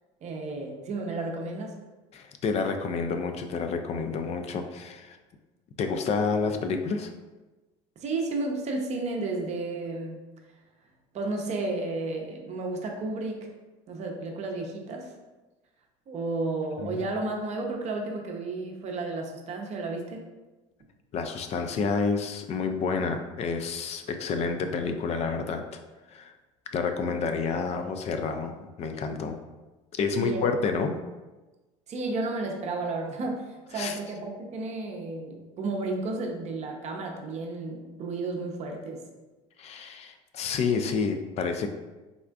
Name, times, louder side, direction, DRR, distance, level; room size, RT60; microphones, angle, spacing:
voice 1, 0.2-1.7 8.0-10.2 11.1-13.5 13.9-15.1 16.1-20.2 24.1-24.2 30.2-30.4 31.9-33.4 33.7-39.0, right 3 dB, 45° right, 2 dB, 0.6 m, -32 dB
voice 2, 2.1-5.2 5.8-7.1 16.8-17.1 21.1-25.6 26.1-26.3 26.7-29.4 29.9-30.9 33.7-34.0 39.6-41.7, left 5 dB, 45° left, 6 dB, 0.4 m, -29 dB
3.6 x 2.4 x 2.3 m, 1.2 s
hypercardioid pair, 80°, 16 cm